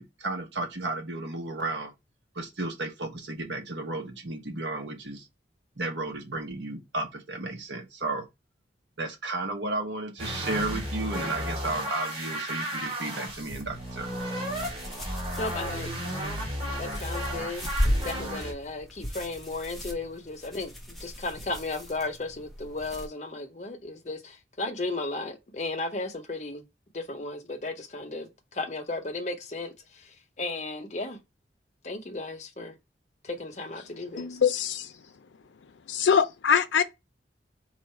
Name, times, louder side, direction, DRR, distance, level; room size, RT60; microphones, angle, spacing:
voice 1, 0.0-1.9 2.3-5.3 5.8-8.3 9.0-14.1, right 2 dB, 80° right, 1.1 m, -33 dB
sound 1, 10.2-18.5, equal, 30° right, 1.8 m, -33 dB
sound 2, 13.3-23.1, equal, ahead, 0.7 m, -36 dB
voice 2, 15.4-16.5 16.8-26.6 26.9-28.3 28.5-29.7 30.4-31.2 31.8-32.7 33.3-34.3, left 2 dB, 40° left, 0.7 m, -35 dB
voice 3, 34.2-34.9 35.9-36.8, left 7 dB, 90° left, 0.5 m, -23 dB
4.5 x 2.5 x 4.3 m
head